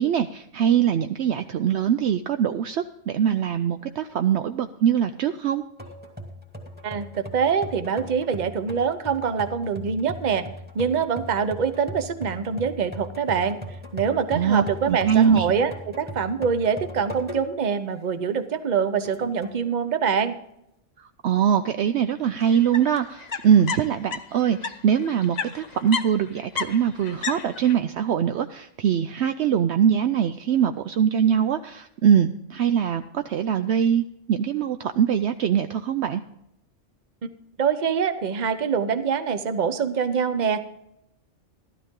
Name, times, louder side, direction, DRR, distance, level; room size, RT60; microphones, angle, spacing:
voice 1, 0.0-5.6 14.3-15.5 21.0-36.2, right 8 dB, 65° right, 9 dB, 0.8 m, -22 dB
sound 1, 5.8-17.7 18.2-18.3 19.0-19.6, left 1 dB, 10° right, 1.8 m, -39 dB
voice 2, 6.8-10.5 10.7-13.6 13.9-20.4 37.2-37.3 37.6-40.6, right 6 dB, 40° right, 11 dB, 0.9 m, -25 dB
sound 2, 22.4-24.7 25.0-27.7, left 6 dB, 40° left, 0.7 m, -32 dB
13.0 x 12.5 x 3.7 m, 0.80 s
omnidirectional pair, 1.3 m